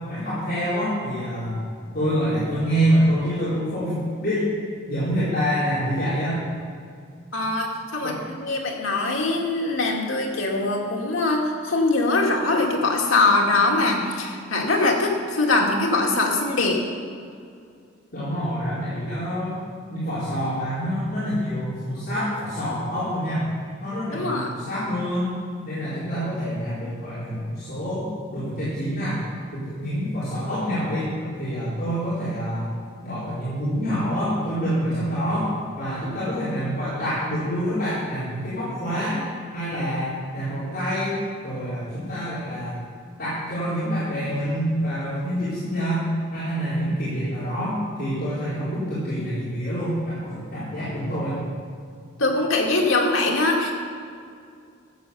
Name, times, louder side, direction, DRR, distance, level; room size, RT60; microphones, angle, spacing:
voice 1, 0.0-1.5 1.9-4.5 4.9-6.4 8.0-8.2 18.1-19.6 19.9-23.5 23.8-25.3 25.6-28.0 28.3-29.2 29.5-32.7 33.0-39.2 39.5-41.2 41.4-42.7 43.2-46.0 46.3-51.4, equal, 45° left, -12 dB, 4.1 m, -26 dB
voice 2, 7.3-16.8 24.1-24.5 52.2-53.7, left 2 dB, 80° left, 0 dB, 2.2 m, -22 dB
14.5 x 7.7 x 7.0 m, 2.3 s
head